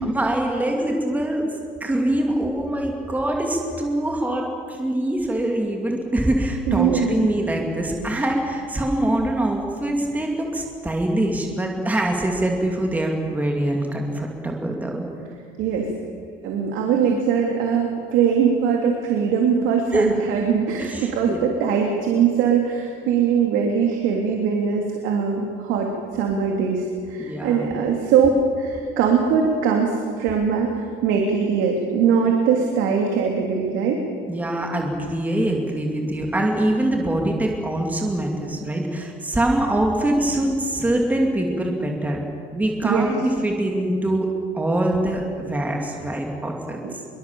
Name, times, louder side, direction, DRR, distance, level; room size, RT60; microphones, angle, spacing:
voice 1, 0.0-1.5 1.8-15.0 19.9-20.1 20.8-21.4 27.2-27.8 34.3-42.2 42.5-46.8, right 1 dB, 5° right, 1 dB, 2.3 m, -24 dB
voice 2, 6.6-7.5 8.1-8.3 15.6-15.9 16.4-34.0 42.8-43.3 46.8-47.0, right 6 dB, 65° right, 1 dB, 3.1 m, -21 dB
25.5 x 23.0 x 7.2 m, 2.2 s
cardioid pair, 175°, 21 cm